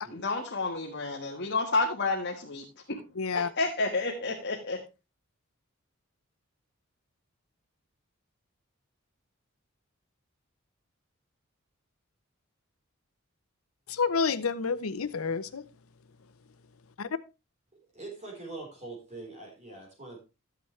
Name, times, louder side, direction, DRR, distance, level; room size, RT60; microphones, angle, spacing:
voice 1, 0.1-3.0 3.3-4.8, left 3 dB, 55° left, 1.6 m, -30 dB
voice 2, 3.2-3.5 13.9-15.6 17.0-17.1, left 5 dB, 85° left, 0.8 m, -29 dB
voice 3, 17.9-20.2, right 2 dB, 35° right, 4.1 m, -43 dB
13.0 x 8.4 x 3.3 m
head